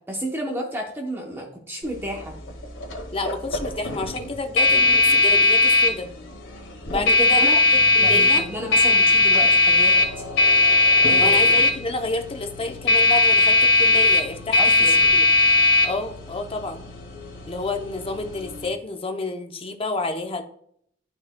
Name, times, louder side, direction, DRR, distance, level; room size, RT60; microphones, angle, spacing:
voice 1, 0.1-2.3 6.9-7.6 8.0-10.2 11.1-11.6 14.6-15.0, equal, 10° right, 0 dB, 0.8 m, -31 dB
sound 1, 1.8-18.7, left 2 dB, 90° left, 1.9 m, -19 dB
voice 2, 3.1-6.1 6.9-7.4 8.0-8.5 11.2-15.3 15.8-16.8 17.5-20.4, left 2 dB, 30° left, 6 dB, 0.7 m, -29 dB
12.0 x 4.6 x 2.2 m, 0.67 s
head